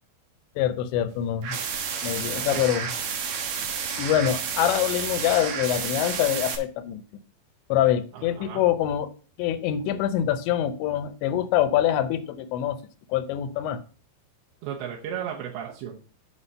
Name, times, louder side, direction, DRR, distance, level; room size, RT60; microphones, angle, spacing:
voice 1, 0.6-1.6 2.0-2.9 4.0-7.0 7.7-9.1 9.4-12.8 13.1-13.8, left 11 dB, 85° left, 11 dB, 3.1 m, -25 dB
sound 1, 1.4-6.6, right 6 dB, 65° right, 2.4 m, -30 dB
voice 2, 8.1-8.6 14.6-16.0, right 9 dB, 80° right, -2 dB, 3.3 m, -34 dB
8.1 x 5.7 x 5.5 m, 0.37 s
omnidirectional pair, 5.1 m